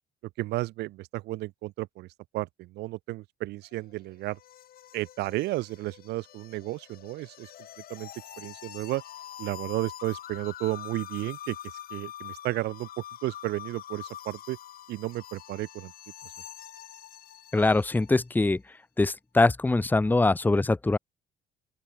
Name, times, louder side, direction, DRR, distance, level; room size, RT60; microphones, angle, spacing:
voice 1, 0.4-2.1 2.3-4.4 4.9-7.5 7.9-8.1 8.4-9.0 9.4-11.6 11.9-12.9 13.2-14.6 14.9-15.9, right 18 dB, 85° right, 1.8 m, -33 dB
sound 1, 3.6-18.2, left 12 dB, 60° left, 3.7 m, -45 dB
voice 2, 17.5-18.6 19.0-21.0, left 2 dB, 10° left, 1.0 m, -23 dB
open air
cardioid pair, 110°, 17 cm